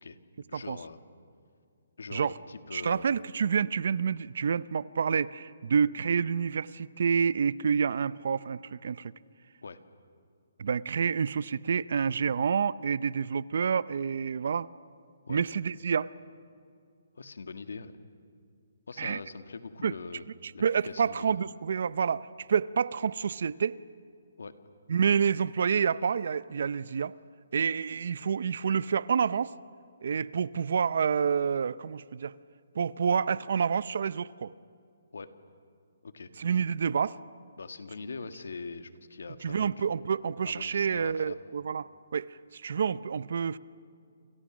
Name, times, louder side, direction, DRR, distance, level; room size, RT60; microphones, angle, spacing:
voice 1, 0.5-1.0 2.0-3.1 9.6-9.8 15.3-15.4 17.1-17.9 18.9-20.3 20.5-21.4 24.4-24.5 35.1-35.3 36.0-36.3 37.6-39.9 40.4-41.4, left 4 dB, 80° left, 9 dB, 1.8 m, -42 dB
voice 2, 2.7-9.1 10.6-14.7 15.3-16.1 19.0-19.2 19.8-19.9 20.6-23.8 24.9-27.1 27.5-29.5 30.0-32.3 32.7-34.5 36.4-37.2 39.4-43.6, right 6 dB, 60° right, 19 dB, 0.6 m, -28 dB
29.0 x 28.0 x 6.2 m, 2.4 s
hypercardioid pair, 165°, 0 cm